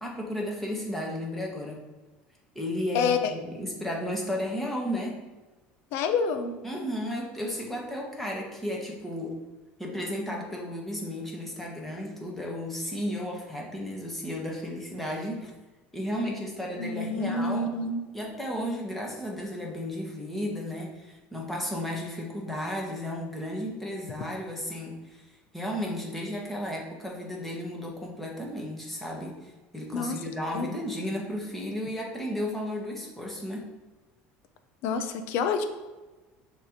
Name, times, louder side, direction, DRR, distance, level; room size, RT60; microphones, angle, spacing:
voice 1, 0.0-1.9 2.5-5.2 6.6-9.4 9.8-15.5 15.9-17.7 18.1-33.7, left 1 dB, 5° left, -2 dB, 1.3 m, -34 dB
voice 2, 2.9-3.3 5.9-6.5 16.8-18.0 29.9-30.2 30.5-30.7 34.8-35.6, left 4 dB, 70° left, 8 dB, 0.7 m, -28 dB
6.5 x 3.1 x 5.1 m, 1.2 s
cardioid pair, 135°, 4 cm